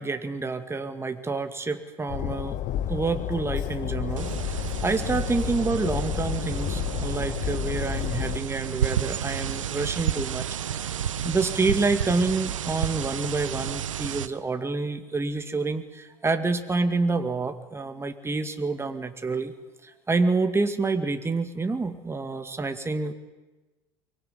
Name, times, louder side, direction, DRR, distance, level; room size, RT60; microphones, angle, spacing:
voice 1, 0.0-2.6 2.9-4.6 4.8-10.5 11.2-19.5 19.8-23.1, right 3 dB, 15° right, 7 dB, 2.1 m, -28 dB
Train, 2.1-8.4, left 11 dB, 50° left, 1.2 m, -31 dB
sound 1, 4.2-14.3, right 9 dB, 85° right, 1.0 m, -31 dB
24.0 x 19.5 x 9.8 m, 1.1 s
hypercardioid pair, 75°, 16 cm